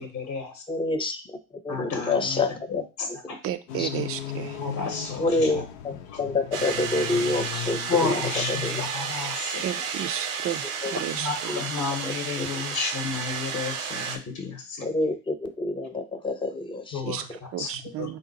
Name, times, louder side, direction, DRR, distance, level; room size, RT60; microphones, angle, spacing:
voice 1, 0.0-0.6 1.7-2.4 2.7-3.4 4.6-5.6 6.1-6.2 7.9-9.9 11.2-14.9 16.9-17.7 18.0-18.2, left 5 dB, 40° left, 3 dB, 0.9 m, -32 dB
voice 2, 0.7-1.4 1.6-2.8 3.2-3.4 3.8-3.9 5.2-8.8 10.8-11.0 11.5-11.6 12.0-12.6 14.8-17.1, left 2 dB, 15° left, 7 dB, 0.5 m, -28 dB
voice 3, 3.4-4.6 9.6-11.6 17.0-18.2, right 11 dB, 35° right, 10 dB, 0.4 m, -33 dB
sound 1, 3.7-8.9, left 10 dB, 80° left, 0.6 m, -36 dB
sound 2, 6.5-14.2, right 6 dB, 90° right, 0.7 m, -32 dB
3.8 x 2.2 x 3.9 m, 0.31 s
hypercardioid pair, 80°, 39 cm